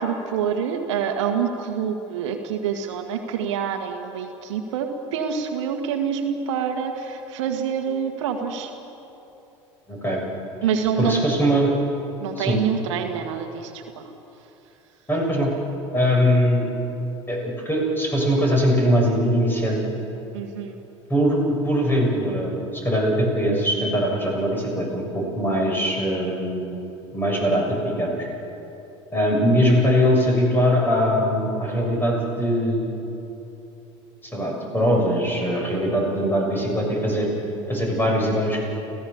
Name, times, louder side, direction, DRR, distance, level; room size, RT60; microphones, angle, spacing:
voice 1, 0.0-8.7 10.6-11.2 12.2-14.1 20.3-20.7, right 7 dB, 70° right, 5 dB, 1.7 m, -26 dB
voice 2, 9.9-10.2 11.0-11.7 12.4-12.6 15.1-15.5 15.9-16.6 17.3-19.8 21.1-26.7 27.1-28.3 29.1-32.9 34.2-37.3 37.7-38.6, equal, 15° left, -1 dB, 7.4 m, -21 dB
30.0 x 16.0 x 7.1 m, 3.0 s
hypercardioid pair, 75°, 16 cm